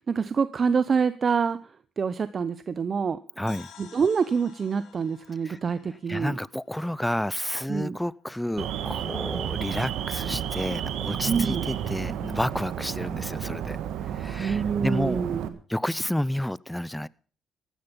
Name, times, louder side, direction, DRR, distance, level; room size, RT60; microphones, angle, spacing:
voice 1, 0.1-1.6 2.0-3.2 3.8-6.4 7.7-8.0 11.3-11.7 14.4-15.4, right 6 dB, 45° right, 0.8 m, -26 dB
voice 2, 3.4-3.7 5.4-5.6 5.9-13.8 14.1-15.2 15.7-17.1, left 1 dB, 5° left, 0.6 m, -30 dB
sound 1, 3.5-7.1, left 8 dB, 80° left, 3.5 m, -51 dB
Alarm, 8.6-15.5, right 9 dB, 85° right, 1.7 m, -32 dB
15.5 x 12.5 x 5.3 m
cardioid pair, 90°, 0 cm